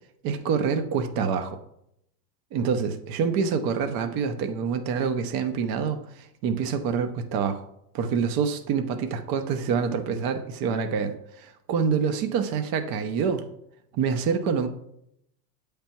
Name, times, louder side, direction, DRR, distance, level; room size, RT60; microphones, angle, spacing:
voice 1, 0.2-1.6 2.5-7.6 7.9-13.5 13.9-14.7, right 6 dB, 45° right, 8 dB, 0.8 m, -26 dB
8.0 x 3.4 x 4.4 m, 0.76 s
supercardioid pair, 115°, 49 cm